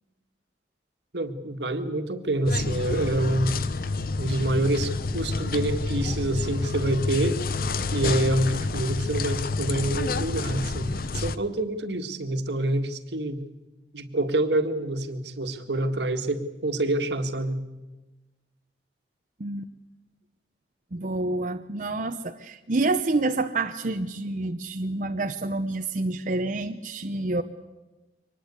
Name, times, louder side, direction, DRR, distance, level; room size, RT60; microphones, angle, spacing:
voice 1, 1.1-3.5 4.2-7.4 7.9-13.4 13.9-17.6, right 1 dB, 75° right, 7 dB, 1.8 m, -27 dB
sound 1, 2.5-11.4, left 3 dB, 55° left, 0.8 m, -29 dB
voice 2, 19.4-19.7 20.9-27.4, right 2 dB, 45° right, 6 dB, 0.8 m, -28 dB
24.0 x 19.5 x 8.3 m, 1.1 s
head